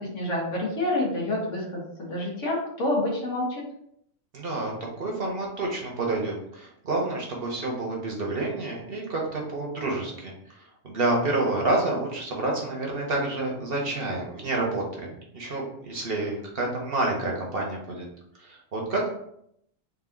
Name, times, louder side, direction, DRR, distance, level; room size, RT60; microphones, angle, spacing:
voice 1, 0.1-1.6 2.0-3.6, left 1 dB, 65° left, -3 dB, 1.6 m, -27 dB
voice 2, 4.3-10.6 10.8-18.0 18.4-19.1, right 2 dB, 50° right, -1 dB, 1.0 m, -29 dB
3.9 x 2.6 x 3.8 m, 0.73 s
omnidirectional pair, 1.4 m